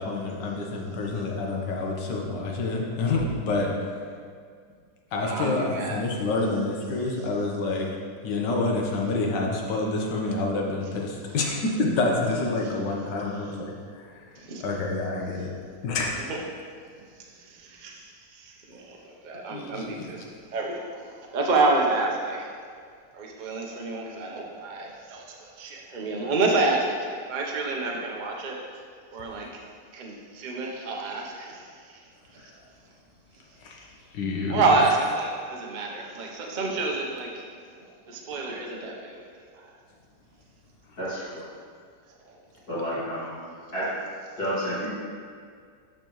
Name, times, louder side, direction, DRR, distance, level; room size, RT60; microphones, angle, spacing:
voice 1, 0.0-3.8 5.1-8.0 8.2-14.2 14.6-15.5 15.8-16.1 19.5-20.0 32.4-32.5 33.6-33.8 34.1-34.6, left 3 dB, 70° left, -1 dB, 1.6 m, -28 dB
voice 2, 5.2-6.0 12.6-12.7 14.4-14.6 16.3-16.4 17.2-22.5 23.1-28.6 29.1-29.5 29.9-32.0 32.3-32.5 34.5-37.4 37.7-39.2 39.5-39.7 42.3-42.4, right 3 dB, 45° right, -1 dB, 0.6 m, -29 dB
voice 3, 41.0-41.4 42.7-43.4 43.7-43.9 44.4-44.9, equal, 55° left, -12 dB, 2.6 m, -30 dB
12.5 x 4.6 x 3.1 m, 2.1 s
omnidirectional pair, 2.0 m